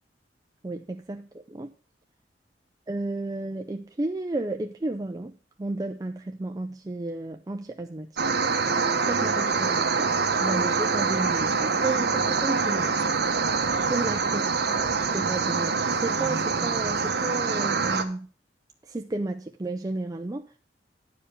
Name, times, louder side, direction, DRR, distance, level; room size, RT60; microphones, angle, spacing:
voice 1, 0.6-1.7 2.9-5.3 5.6-8.1 9.0-10.1 10.4-12.9 13.9-14.4 15.1-15.7 16.0-18.3 18.8-20.5, right 2 dB, 20° right, 5 dB, 0.4 m, -32 dB
sound 1, 8.2-18.0, right 4 dB, 60° right, 1.0 m, -25 dB
10.0 x 4.9 x 6.6 m, 0.40 s
head